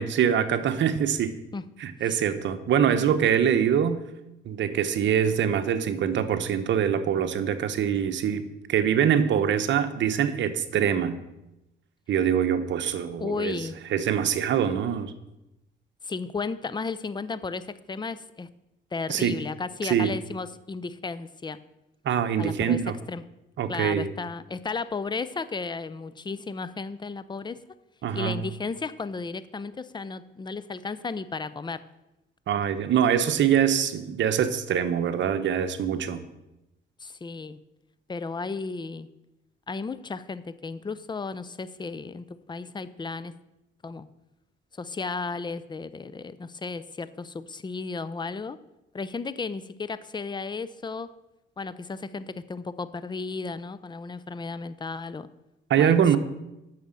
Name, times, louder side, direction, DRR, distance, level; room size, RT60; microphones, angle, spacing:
voice 1, 0.0-1.3 1.8-4.0 4.5-8.4 8.7-11.2 12.1-13.6 13.9-15.1 19.1-19.3 19.8-20.1 22.0-22.9 23.6-24.1 28.0-28.3 32.5-36.2 55.7-56.2, right 8 dB, 70° right, 9 dB, 1.0 m, -24 dB
voice 2, 13.2-13.8 16.0-18.5 18.9-21.6 22.4-22.8 23.1-23.2 23.7-27.6 28.1-31.8 37.0-37.6 38.1-39.1 39.7-43.3 43.8-44.1 44.8-48.6 48.9-51.1 51.6-55.3 55.8-56.2, left 4 dB, 20° left, 15 dB, 0.6 m, -34 dB
9.2 x 6.6 x 7.4 m, 0.93 s
cardioid pair, 90°, 20 cm